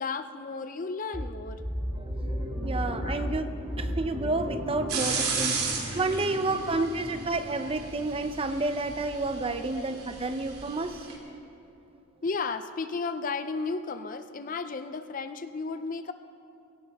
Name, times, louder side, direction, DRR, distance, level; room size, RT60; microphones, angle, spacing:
voice 1, 0.0-1.6 3.0-3.3 6.3-6.9 9.7-9.8 12.2-16.1, left 4 dB, 40° left, 10 dB, 0.5 m, -34 dB
sound 1, 1.1-6.8, equal, 5° right, 3.1 m, -34 dB
voice 2, 2.0-5.6 5.9-11.0, right 2 dB, 25° right, 9 dB, 0.6 m, -30 dB
sound 2, 4.9-11.1, right 4 dB, 85° right, 2.7 m, -34 dB
20.5 x 17.0 x 3.5 m, 2.7 s
head